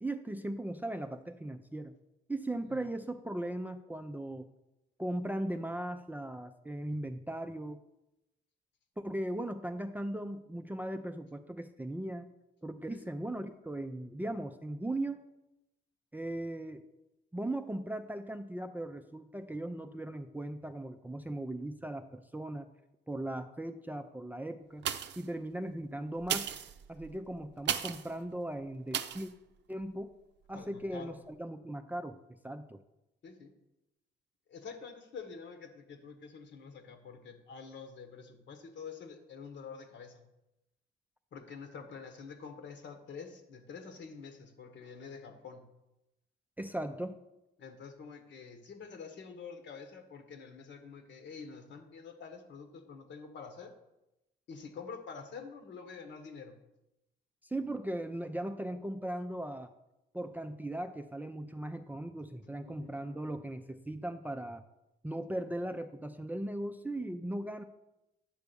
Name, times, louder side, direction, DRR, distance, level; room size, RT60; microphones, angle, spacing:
voice 1, 0.0-1.9 2.3-4.5 5.0-7.8 9.0-12.3 12.6-15.2 16.1-16.8 17.3-22.7 23.1-24.8 25.2-26.5 26.9-29.3 29.7-30.1 30.5-32.8 46.6-47.2 57.4-59.7 60.1-64.6 65.0-67.6, right 1 dB, 10° right, 7 dB, 0.4 m, -38 dB
sound 1, 24.8-25.3 26.2-28.1 28.9-29.3 29.8-29.9, right 9 dB, 65° right, 0.6 m, -35 dB
voice 2, 30.5-31.2 33.2-33.5 34.5-40.2 41.3-45.7 47.6-53.7 54.5-56.5 62.6-63.0, left 5 dB, 65° left, 6 dB, 1.3 m, -47 dB
9.3 x 3.4 x 6.8 m, 0.92 s
cardioid pair, 90°, 20 cm